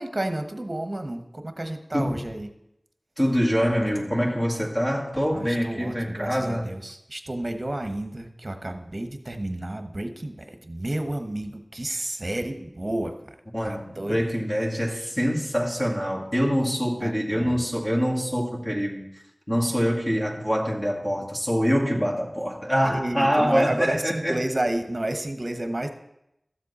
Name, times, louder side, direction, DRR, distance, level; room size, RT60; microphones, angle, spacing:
voice 1, 0.0-2.5 5.3-14.3 17.0-17.6 22.8-25.9, right 1 dB, 40° right, 7 dB, 1.1 m, -31 dB
voice 2, 3.2-6.7 13.5-19.1 19.5-24.3, equal, 20° left, -3 dB, 2.1 m, -25 dB
13.5 x 7.5 x 4.2 m, 0.82 s
wide cardioid pair, 55°, 0 cm